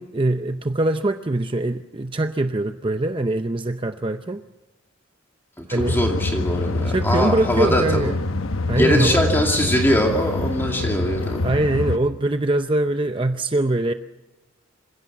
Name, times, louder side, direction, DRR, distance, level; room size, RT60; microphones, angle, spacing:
voice 1, 0.0-4.4 5.7-6.0 6.9-8.2 8.7-9.2 10.7-10.8 11.4-13.9, right 2 dB, 25° right, 8 dB, 0.6 m, -23 dB
voice 2, 5.6-8.1 8.8-11.5, equal, 10° left, 1 dB, 2.5 m, -22 dB
sound 1, 5.8-12.0, left 2 dB, 85° left, 1.0 m, -25 dB
27.0 x 16.5 x 7.2 m, 1.0 s
head